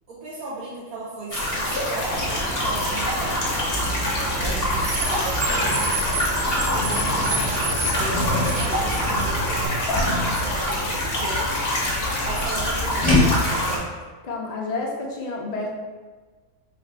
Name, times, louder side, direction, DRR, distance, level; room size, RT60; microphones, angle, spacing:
voice 1, 0.1-3.7 4.8-5.8 6.3-11.7 12.2-14.1, right 2 dB, 80° right, -8 dB, 1.2 m, -36 dB
sound 1, 1.3-13.8, left 1 dB, 45° left, 1.1 m, -25 dB
Car, 2.1-9.7, right 2 dB, 55° right, 0.7 m, -29 dB
sound 2, 6.0-13.7, left 2 dB, 5° left, 1.4 m, -28 dB
voice 2, 14.2-15.7, left 3 dB, 80° left, -2 dB, 0.3 m, -29 dB
3.7 x 2.4 x 4.5 m, 1.4 s
omnidirectional pair, 1.5 m